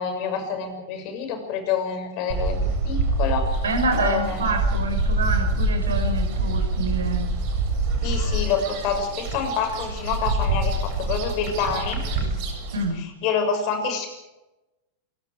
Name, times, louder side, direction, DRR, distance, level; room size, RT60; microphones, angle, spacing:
voice 1, 0.0-2.6 2.8-3.6 4.0-4.4 8.0-12.0 12.9-14.1, left 6 dB, 45° left, 6 dB, 6.7 m, -27 dB
sound 1, 2.3-12.8, right 2 dB, 45° right, 7.1 m, -25 dB
voice 2, 3.6-7.3 12.7-13.0, right 3 dB, 70° right, 7 dB, 5.4 m, -27 dB
28.0 x 23.5 x 5.1 m, 0.99 s
figure-of-eight pair, 90°, 0 cm